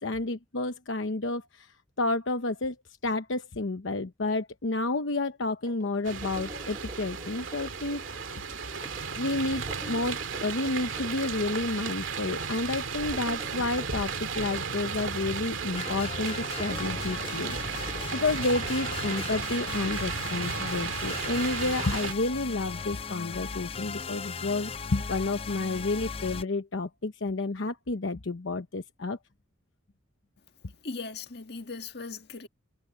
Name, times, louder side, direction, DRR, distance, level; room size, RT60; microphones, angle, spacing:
voice 1, 0.0-2.8 3.0-8.4 9.1-29.2, left 2 dB, 75° left, 0.9 m, -30 dB
sound 1, 5.7-19.4, right 1 dB, 20° right, 1.6 m, -47 dB
sound 2, 6.0-22.1, right 5 dB, 85° right, 2.2 m, -34 dB
sound 3, 15.7-26.4, left 5 dB, 30° left, 0.5 m, -37 dB
voice 2, 30.8-32.5, left 4 dB, 55° left, 1.8 m, -38 dB
head